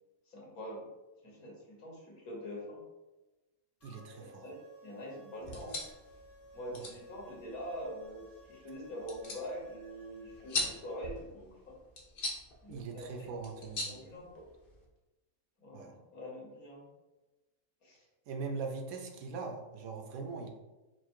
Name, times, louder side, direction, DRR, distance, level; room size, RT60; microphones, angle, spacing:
voice 1, 0.3-0.9 1.2-2.8 3.9-4.6 4.8-5.8 6.5-11.8 12.6-13.3 13.6-14.5 15.6-16.8 17.8-18.1, equal, 85° left, -3 dB, 1.7 m, -44 dB
sound 1, 3.8-11.0, right 1 dB, 15° left, 0.6 m, -57 dB
voice 2, 3.8-4.5 6.7-6.9 12.7-14.0 15.7-15.9 18.3-20.5, right 4 dB, 80° right, 4 dB, 1.1 m, -41 dB
sound 2, 5.4-14.9, left 2 dB, 50° left, 0.8 m, -42 dB
4.8 x 2.0 x 4.4 m, 1.1 s
omnidirectional pair, 1.5 m